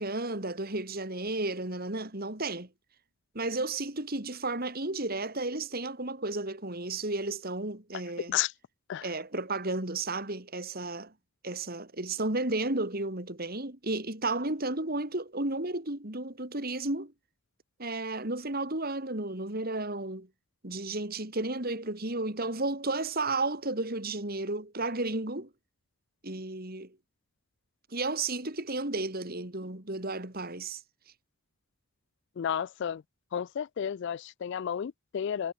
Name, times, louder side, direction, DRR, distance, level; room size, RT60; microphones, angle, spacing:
voice 1, 0.0-2.7 3.3-8.4 9.0-11.1 11.4-17.1 17.8-20.3 20.6-25.5 26.2-26.9 27.9-30.8, right 2 dB, 45° right, 3.1 m, -33 dB
voice 2, 32.4-33.0 33.3-35.5, left 9 dB, 55° left, 0.3 m, -32 dB
head